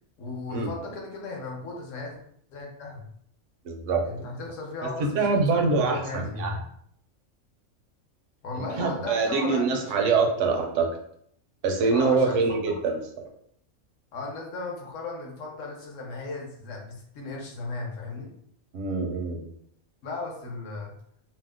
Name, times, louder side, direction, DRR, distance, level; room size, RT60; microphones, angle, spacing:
voice 1, 0.2-2.2 2.5-3.1 4.0-6.6 8.4-10.0 11.9-12.7 14.1-18.3 20.0-20.9, left 3 dB, 65° left, 0 dB, 1.1 m, -36 dB
voice 2, 3.7-4.0 5.0-6.5 8.5-10.9 11.6-13.0 18.7-19.5, right 4 dB, 70° right, 4 dB, 0.9 m, -24 dB
2.8 x 2.0 x 3.5 m, 0.68 s
omnidirectional pair, 1.5 m